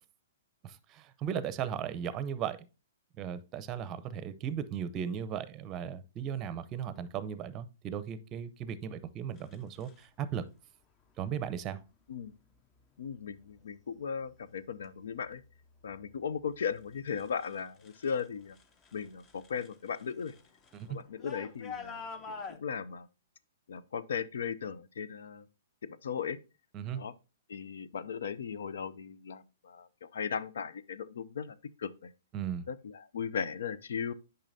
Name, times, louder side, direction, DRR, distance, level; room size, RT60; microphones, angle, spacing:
voice 1, 0.6-2.6 3.2-10.4 11.2-11.8 20.7-21.0 26.7-27.0 32.3-32.7, right 8 dB, 25° right, 0.6 m, -36 dB
sound 1, 9.4-10.0 11.2-11.5 12.1-12.5 13.1-13.6 14.0-18.3 18.5-22.6, left 5 dB, 25° left, 0.8 m, -48 dB
voice 2, 13.0-15.4 15.8-18.6 18.9-20.3 20.9-23.1 23.7-25.5 25.8-26.4 26.9-27.1 27.5-32.1 32.7-34.1, left 7 dB, 75° left, 0.5 m, -37 dB
8.8 x 5.5 x 2.7 m
hypercardioid pair, 140°, 0 cm